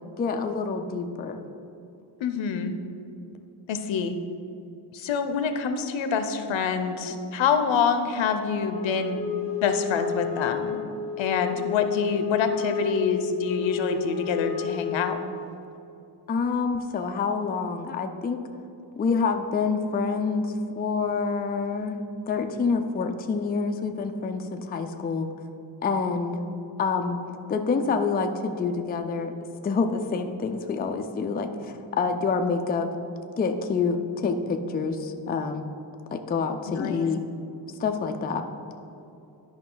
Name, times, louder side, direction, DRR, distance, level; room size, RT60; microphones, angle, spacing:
voice 1, 0.2-1.4 7.1-7.3 16.3-18.4 19.0-22.0 22.3-25.3 25.8-26.4 26.8-27.2 27.5-29.3 29.6-32.9 33.4-35.7 36.1-37.2 37.8-38.5, left 4 dB, 25° left, 5 dB, 0.3 m, -27 dB
voice 2, 2.2-2.7 3.7-4.1 4.9-9.2 9.6-10.8 11.2-15.2 36.7-37.1, left 6 dB, 85° left, 8 dB, 0.8 m, -26 dB
Wind instrument woodwind instrument, 8.7-15.5, left 7 dB, 50° left, 0.7 m, -31 dB
11.5 x 5.2 x 3.9 m, 2.7 s
wide cardioid pair, 165°, 45 cm